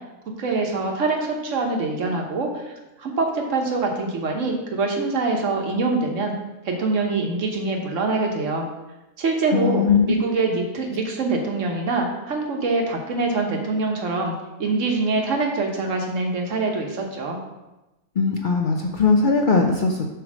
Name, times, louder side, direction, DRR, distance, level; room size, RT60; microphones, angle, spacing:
voice 1, 0.4-2.7 3.0-6.4 6.6-8.7 9.2-14.3 14.6-17.4, right 3 dB, 60° right, 2 dB, 1.4 m, -24 dB
voice 2, 9.5-10.2 18.2-20.1, left 4 dB, 60° left, 2 dB, 0.5 m, -19 dB
7.9 x 3.2 x 6.1 m, 1.0 s
omnidirectional pair, 1.5 m